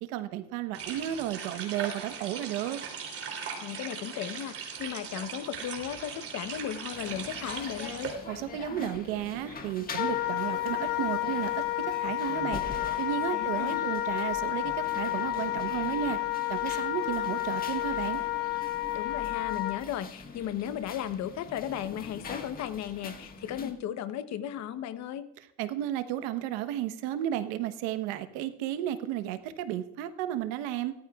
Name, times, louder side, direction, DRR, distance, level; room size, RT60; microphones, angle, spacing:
voice 1, 0.0-2.8 8.3-12.6 13.0-16.2 16.5-18.2 25.6-30.9, right 12 dB, 90° right, 10 dB, 1.1 m, -33 dB
sound 1, 0.7-8.1, right 6 dB, 45° right, 3.2 m, -39 dB
voice 2, 3.6-8.1 13.3-13.8 18.9-25.2, left 10 dB, 60° left, 12 dB, 1.0 m, -36 dB
sound 2, 6.9-23.7, left 4 dB, 30° left, 1.6 m, -44 dB
Wind instrument woodwind instrument, 9.9-19.8, left 16 dB, 90° left, 0.9 m, -31 dB
17.5 x 13.5 x 2.4 m, 0.84 s
cardioid pair, 110°, 31 cm